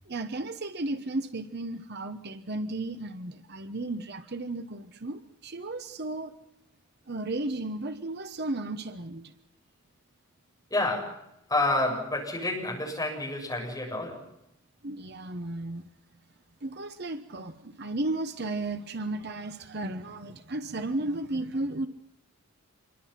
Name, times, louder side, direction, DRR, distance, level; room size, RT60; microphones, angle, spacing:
voice 1, 0.1-6.3 7.1-9.3 14.8-15.9 16.6-21.9, right 2 dB, 45° right, 9 dB, 1.1 m, -34 dB
voice 2, 10.7-14.2, left 2 dB, 15° left, -1 dB, 7.8 m, -29 dB
27.0 x 23.0 x 5.9 m, 0.81 s
head